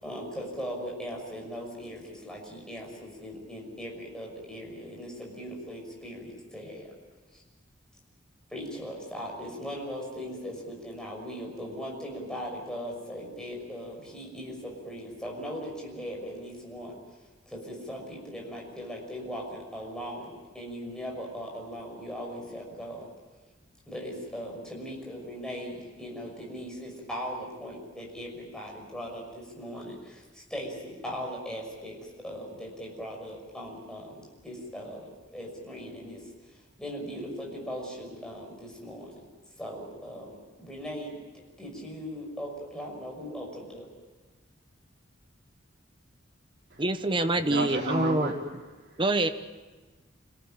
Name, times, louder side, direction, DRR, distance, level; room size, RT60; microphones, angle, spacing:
voice 1, 0.0-6.9 7.3-7.4 8.5-17.0 17.5-23.1 23.9-36.2 36.5-39.2 39.6-43.9, equal, 5° left, -1 dB, 6.1 m, -39 dB
voice 2, 46.8-48.3 49.0-49.3, right 2 dB, 25° right, 9 dB, 1.1 m, -25 dB
voice 3, 47.3-49.0, right 1 dB, 55° right, -2 dB, 5.0 m, -33 dB
27.0 x 18.0 x 9.0 m, 1.3 s
head